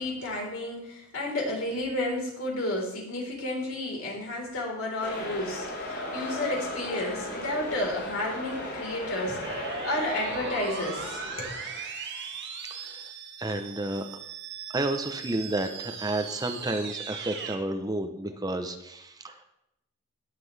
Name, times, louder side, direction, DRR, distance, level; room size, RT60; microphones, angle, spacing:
voice 1, 0.0-11.6, left 1 dB, 70° left, -2 dB, 4.0 m, -32 dB
sound 1, 5.0-11.8, left 1 dB, 50° left, 4.6 m, -36 dB
sound 2, 9.4-17.6, right 6 dB, 55° right, 1.4 m, -38 dB
voice 2, 13.4-14.1 14.7-19.4, right 2 dB, 20° right, 6 dB, 0.7 m, -31 dB
18.5 x 7.7 x 3.3 m, 0.84 s
head